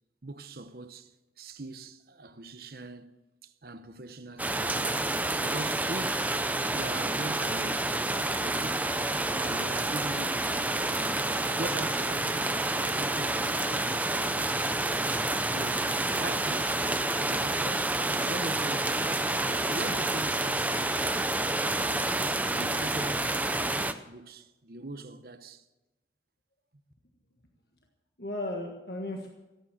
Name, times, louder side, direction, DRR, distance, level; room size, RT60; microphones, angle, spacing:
voice 1, 0.2-1.1 1.4-3.1 3.4-5.0 5.4-6.3 6.7-8.8 9.4-15.1 15.5-16.8 17.0-17.7 18.1-20.9 21.6-22.1 22.5-25.6, right 2 dB, 55° right, 0.9 m, -42 dB
sound 1, 4.4-23.9, right 2 dB, 10° right, 0.5 m, -29 dB
voice 2, 28.2-29.3, left 1 dB, 65° left, 1.5 m, -36 dB
16.0 x 9.0 x 7.7 m
head